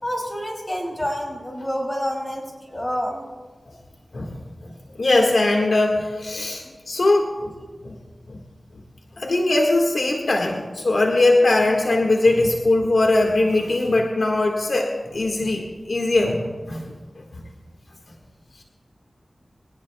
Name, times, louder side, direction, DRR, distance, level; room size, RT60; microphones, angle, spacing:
voice 1, 0.0-3.3 6.6-6.7, equal, 25° left, -1 dB, 5.5 m, -28 dB
voice 2, 4.1-7.5 7.8-8.0 8.3-8.4 9.2-16.8, left 2 dB, 75° left, 1 dB, 1.7 m, -21 dB
23.5 x 18.5 x 2.3 m, 1.4 s
wide cardioid pair, 60°, 0 cm